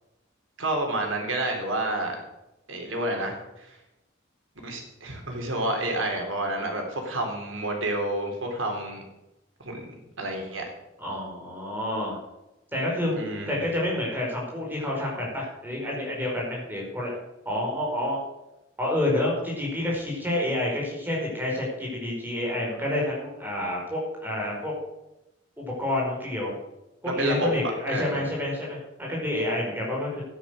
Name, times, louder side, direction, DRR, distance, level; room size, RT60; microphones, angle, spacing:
voice 1, 0.6-2.2 2.7-3.7 4.6-9.0 9.6-9.9 10.2-10.6 13.1-13.5 27.0-28.2, right 1 dB, 90° right, 2 dB, 3.7 m, -29 dB
voice 2, 11.0-12.2 12.7-17.1 17.5-18.2 18.8-24.7 25.6-26.5 27.0-30.2, left 1 dB, 10° right, -3 dB, 5.2 m, -29 dB
12.5 x 10.0 x 6.5 m, 0.94 s
head